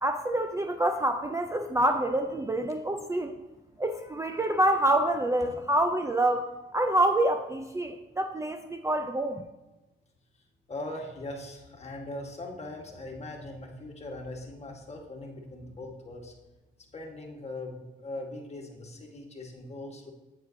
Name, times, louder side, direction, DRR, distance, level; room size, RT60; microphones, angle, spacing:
voice 1, 0.0-3.4 3.8-6.5 6.7-9.4, right 1 dB, 15° right, 6 dB, 0.4 m, -27 dB
voice 2, 10.7-16.3 16.9-20.1, left 2 dB, 35° left, 1 dB, 1.4 m, -40 dB
8.1 x 7.7 x 2.7 m, 1.1 s
cardioid pair, 90°, 20 cm